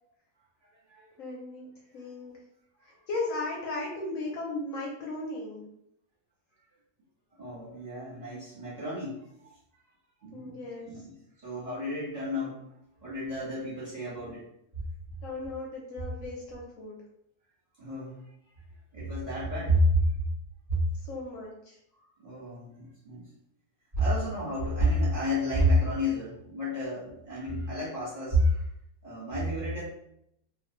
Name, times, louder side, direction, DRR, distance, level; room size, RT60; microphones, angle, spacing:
voice 1, 1.2-1.7 1.9-2.3 2.8-5.7 10.3-11.0 15.2-17.0 20.9-21.8, left 2 dB, 70° left, -1 dB, 0.9 m, -36 dB
voice 2, 7.4-9.2 10.2-10.6 10.8-11.1 11.4-12.7 13.0-14.5 17.8-18.2 18.9-20.2 20.7-20.8 22.2-23.3 23.9-28.7 29.0-29.8, equal, 30° right, -10 dB, 0.9 m, -29 dB
2.4 x 2.4 x 3.0 m, 0.77 s
omnidirectional pair, 1.6 m